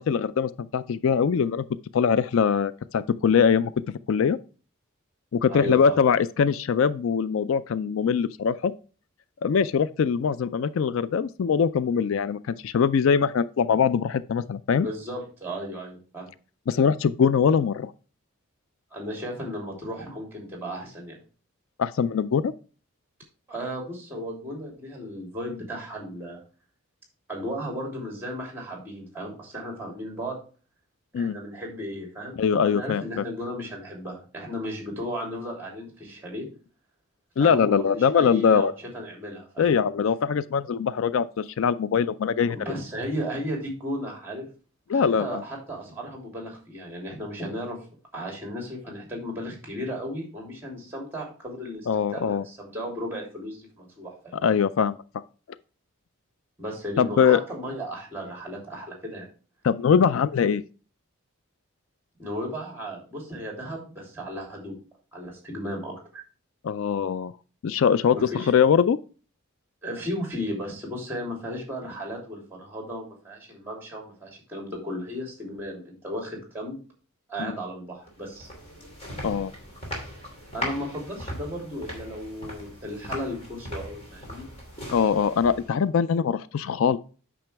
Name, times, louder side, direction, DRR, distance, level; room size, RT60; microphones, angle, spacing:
voice 1, 0.0-1.6 1.9-3.7 4.1-4.4 5.3-8.7 9.4-14.9 16.7-17.9 21.8-22.5 31.1-31.3 32.4-33.2 37.4-38.7 39.6-42.6 44.9-45.4 51.9-52.4 54.3-55.0 57.0-57.4 59.6-60.6 66.6-67.3 67.6-69.0 77.4-77.6 79.2-79.5 84.9-87.0, left 6 dB, 70° left, 0.3 m, -22 dB
voice 2, 5.5-6.0 14.7-16.3 18.9-21.2 23.5-26.4 27.3-30.4 31.2-32.3 32.6-36.5 37.4-39.8 42.5-44.5 44.9-47.8 48.1-54.5 56.6-59.3 62.2-64.7 65.1-66.2 68.1-68.5 69.8-76.8 77.3-78.5 80.5-84.5, equal, 10° right, 3.0 m, -35 dB
sound 1, 78.1-85.9, equal, 30° left, 2.8 m, -39 dB
8.9 x 6.2 x 3.4 m
head